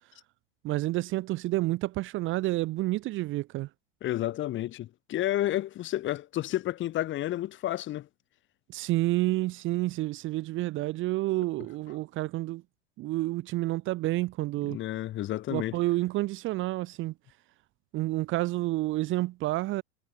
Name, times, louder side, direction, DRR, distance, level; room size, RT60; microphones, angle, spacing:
voice 1, 0.6-3.7 8.7-12.6 13.0-14.8 15.5-17.1 17.9-19.8, right 18 dB, 35° right, 0.8 m, -29 dB
voice 2, 4.0-8.1 14.7-15.8, left 14 dB, 35° left, 1.8 m, -31 dB
supercardioid pair, 135°, 34 cm